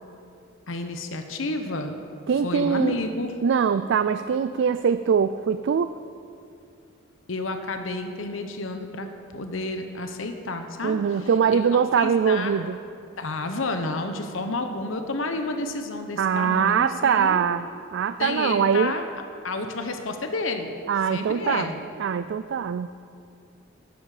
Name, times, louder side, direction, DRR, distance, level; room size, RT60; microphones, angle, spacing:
voice 1, 0.7-2.0 2.4-3.4 7.3-9.1 9.3-12.5 13.2-17.4 18.2-19.1 19.4-20.7 21.1-21.8, left 2 dB, 90° left, 6 dB, 0.9 m, -30 dB
voice 2, 2.3-3.0 3.4-6.0 10.8-12.8 16.2-18.9 20.9-21.7 22.0-22.9, right 7 dB, 65° right, 12 dB, 0.3 m, -22 dB
13.5 x 11.5 x 5.0 m, 2.4 s
head